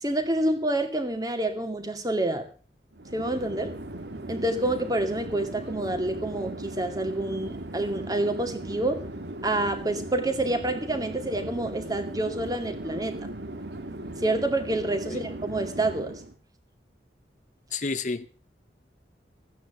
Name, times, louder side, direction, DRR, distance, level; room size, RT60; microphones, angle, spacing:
voice 1, 0.0-2.5 3.1-3.7 4.3-9.0 9.4-13.3 14.2-16.1, right 1 dB, 20° right, 6 dB, 2.3 m, -28 dB
Chatter / Fixed-wing aircraft airplane, 2.9-16.3, right 1 dB, 70° right, 1.7 m, -38 dB
voice 2, 17.7-18.3, left 4 dB, 45° left, 12 dB, 0.8 m, -30 dB
15.0 x 9.3 x 7.2 m, 0.39 s
head